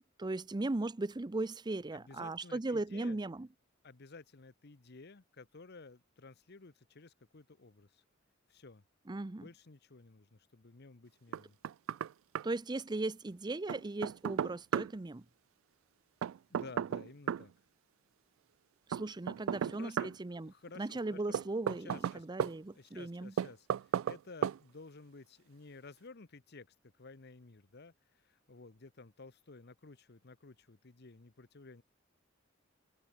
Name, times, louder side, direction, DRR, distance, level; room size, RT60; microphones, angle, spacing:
voice 1, 0.2-3.5 9.1-9.4 12.4-15.2 18.9-23.3, right 2 dB, 20° right, 0.5 m, -37 dB
voice 2, 1.9-3.2 3.8-8.0 8.5-8.8 9.4-11.6 16.5-17.5 19.5-21.5 21.8-22.3 22.7-31.8, left 3 dB, 55° left, 1.0 m, -54 dB
Knock, 11.3-12.1 12.4-12.5 13.7-14.9 16.2-17.5 18.9-20.2 21.3-22.5 23.4-24.2 24.4-24.6, right 8 dB, 90° right, 0.3 m, -34 dB
head